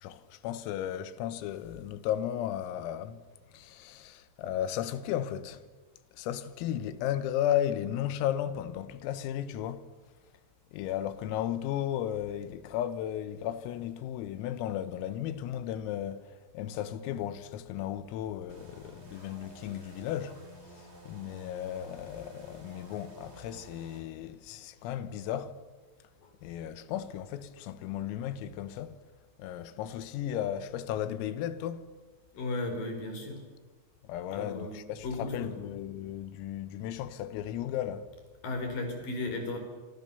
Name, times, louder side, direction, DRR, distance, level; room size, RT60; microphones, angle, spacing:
voice 1, 0.0-3.2 3.5-5.6 6.1-9.9 10.7-25.6 26.4-29.0 29.4-31.9 34.0-38.1, left 11 dB, 85° left, 3.9 m, -35 dB
sound 1, 18.5-24.0, equal, 15° right, 2.6 m, -51 dB
voice 2, 32.3-33.4 34.3-34.8 35.0-35.6 38.4-39.6, left 2 dB, 45° left, 5.7 m, -35 dB
26.0 x 25.5 x 7.0 m
omnidirectional pair, 5.9 m